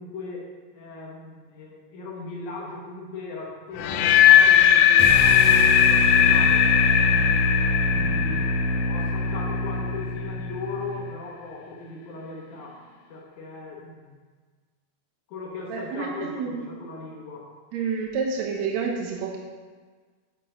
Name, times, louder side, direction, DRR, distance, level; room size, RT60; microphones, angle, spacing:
voice 1, 0.0-6.7 7.1-7.5 7.9-14.2 15.3-17.5, left 2 dB, 65° left, -2 dB, 2.2 m, -38 dB
sound 1, 3.8-9.8, left 9 dB, 85° left, 2.0 m, -18 dB
sound 2, 5.0-11.1, left 1 dB, 60° right, 2.4 m, -26 dB
voice 2, 15.7-16.7 17.7-19.4, right 5 dB, 80° right, 0 dB, 1.6 m, -29 dB
8.7 x 8.4 x 3.8 m, 1.5 s
omnidirectional pair, 4.3 m